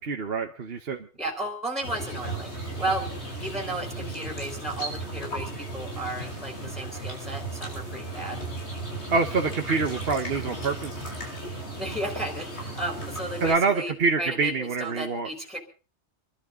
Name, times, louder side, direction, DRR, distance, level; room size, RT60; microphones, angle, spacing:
voice 1, 0.0-1.1 9.1-10.9 13.4-15.3, right 4 dB, 60° right, 4 dB, 1.4 m, -26 dB
voice 2, 1.2-2.5 2.8-3.0 3.4-8.4 11.8-15.6, right 1 dB, ahead, 3 dB, 3.8 m, -34 dB
sound 1, 1.8-13.5, right 2 dB, 70° left, 5.8 m, -35 dB
27.0 x 12.0 x 3.8 m, 0.36 s
omnidirectional pair, 1.2 m